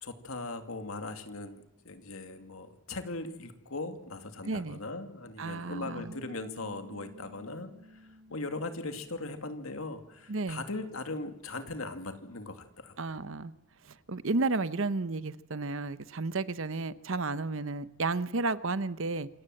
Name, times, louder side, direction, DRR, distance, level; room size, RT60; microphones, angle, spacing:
voice 1, 0.0-13.0, left 2 dB, 75° left, 7 dB, 2.4 m, -39 dB
voice 2, 4.4-4.8 5.4-6.1 10.3-10.6 13.0-13.5 13.8-19.3, right 3 dB, 65° right, 15 dB, 0.9 m, -32 dB
Bass guitar, 5.8-12.1, equal, 35° right, 3.5 m, -54 dB
27.0 x 18.5 x 7.8 m, 0.93 s
head